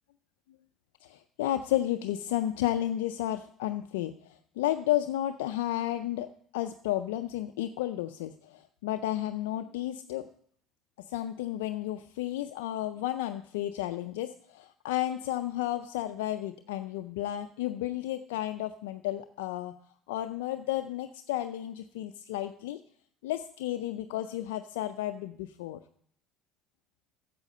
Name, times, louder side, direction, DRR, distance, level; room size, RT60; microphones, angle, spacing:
voice 1, 1.0-10.3 11.1-19.7 20.1-22.8 23.2-25.8, left 13 dB, 85° left, 8 dB, 0.4 m, -32 dB
8.2 x 7.6 x 5.3 m, 0.63 s
hypercardioid pair, 70°, 0 cm